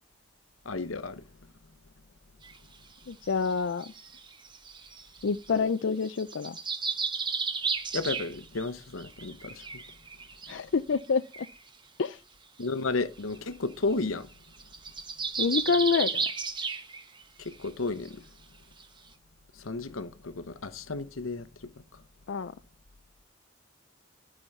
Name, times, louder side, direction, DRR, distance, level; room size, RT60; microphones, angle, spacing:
voice 1, 0.6-1.2 7.9-9.8 12.6-14.3 17.4-18.2 19.5-22.0, left 3 dB, 85° left, 0.9 m, -33 dB
sound 1, 2.4-2.6 3.3-5.6 6.0-8.7 9.0-10.6 11.0-11.1 11.3-11.6 12.6-12.7 12.9-13.0 13.3-13.5 13.9-14.0 14.3-17.2 17.5-17.7 18.1-18.2 18.8-18.9, right 5 dB, 25° right, 1.1 m, -34 dB
voice 2, 3.1-3.9 5.2-6.6 10.5-11.2 12.0-12.2 15.4-16.2 22.3-22.5, left 5 dB, 65° left, 0.5 m, -27 dB
12.0 x 6.2 x 5.4 m
head